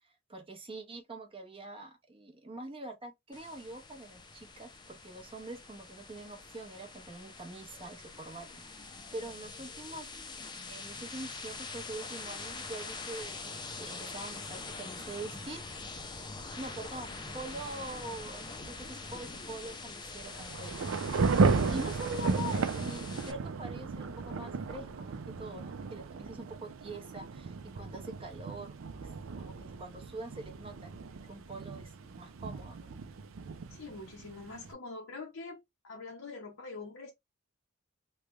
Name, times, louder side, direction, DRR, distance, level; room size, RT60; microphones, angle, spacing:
voice 1, 0.3-8.6 8.9-10.1 10.7-15.6 16.6-20.9 21.4-29.1 29.4-32.9, right 2 dB, 25° right, 0.9 m, -44 dB
sound 1, 3.3-23.3, left 3 dB, 20° left, 0.6 m, -44 dB
Thunder / Rain, 20.3-34.7, right 4 dB, 70° right, 0.4 m, -34 dB
voice 2, 33.7-35.6 35.8-37.1, left 3 dB, 75° left, 0.8 m, -44 dB
3.2 x 2.3 x 3.0 m
head